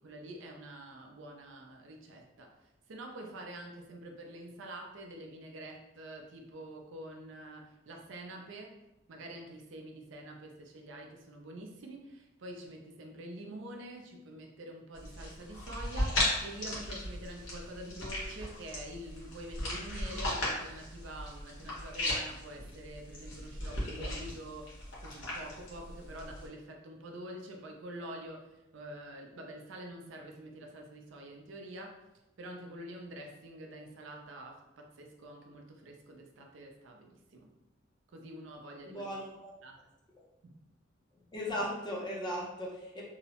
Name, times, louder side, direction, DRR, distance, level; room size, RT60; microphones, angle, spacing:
voice 1, 0.0-2.6 2.9-8.7 9.1-28.5 28.7-31.9 32.4-37.5 38.1-39.1 39.6-39.8 40.4-40.6, right 1 dB, 70° right, 1 dB, 0.4 m, -46 dB
sound 1, 14.9-26.5, left 1 dB, 80° left, 0.9 m, -37 dB
voice 2, 38.9-39.5 41.3-43.0, equal, 20° left, -3 dB, 0.5 m, -37 dB
2.7 x 2.0 x 2.8 m, 0.94 s
head